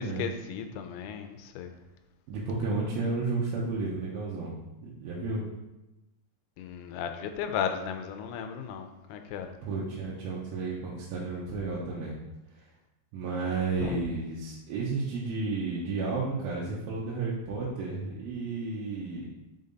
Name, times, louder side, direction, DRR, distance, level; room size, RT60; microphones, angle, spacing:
voice 1, 0.0-1.7 6.6-9.5 13.8-14.0, left 7 dB, 90° left, 7 dB, 2.6 m, -35 dB
voice 2, 2.3-4.5 4.8-5.4 9.6-12.2 13.1-19.3, right 3 dB, 80° right, -5 dB, 2.6 m, -32 dB
5.6 x 5.3 x 3.9 m, 0.99 s
omnidirectional pair, 4.5 m